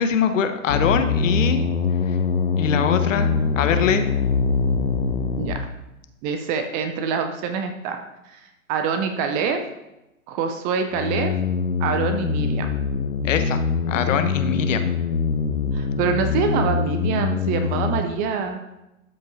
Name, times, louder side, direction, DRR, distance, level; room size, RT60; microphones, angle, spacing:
voice 1, 0.0-1.6 2.6-4.1 13.2-14.9, left 7 dB, 60° left, 9 dB, 1.2 m, -23 dB
sound 1, 0.7-5.7 10.9-18.0, left 5 dB, 80° left, 1.1 m, -23 dB
voice 2, 6.2-8.0 8.3-8.4 8.7-9.6 10.3-11.3 11.8-12.8 15.7-18.6, right 6 dB, 20° right, 6 dB, 0.6 m, -25 dB
12.5 x 5.3 x 4.0 m, 0.92 s
hypercardioid pair, 120°, 43 cm